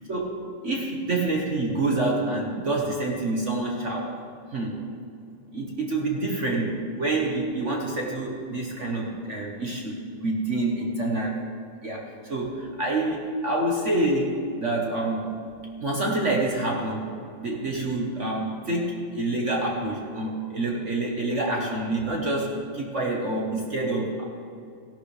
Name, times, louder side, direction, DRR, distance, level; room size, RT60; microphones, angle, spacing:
voice 1, 0.6-4.1 4.5-4.8 5.5-10.0 10.2-11.3 11.8-15.3 15.8-17.1 17.4-24.2, right 2 dB, 40° right, -1 dB, 1.4 m, -27 dB
16.5 x 11.5 x 3.4 m, 2.5 s
omnidirectional pair, 2.2 m